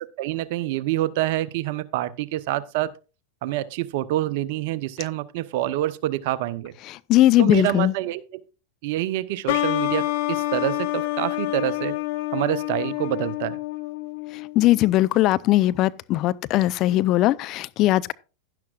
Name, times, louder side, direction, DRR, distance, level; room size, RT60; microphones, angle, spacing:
voice 1, 0.2-2.9 3.4-6.7 7.4-8.4 8.8-11.9 12.3-13.6, right 14 dB, 60° right, 0.9 m, -26 dB
voice 2, 7.1-7.9 14.6-18.1, left 15 dB, 45° left, 0.6 m, -19 dB
sound 1, 9.5-14.9, left 18 dB, 60° left, 0.9 m, -27 dB
12.0 x 11.0 x 2.4 m
hypercardioid pair, 95°, 0 cm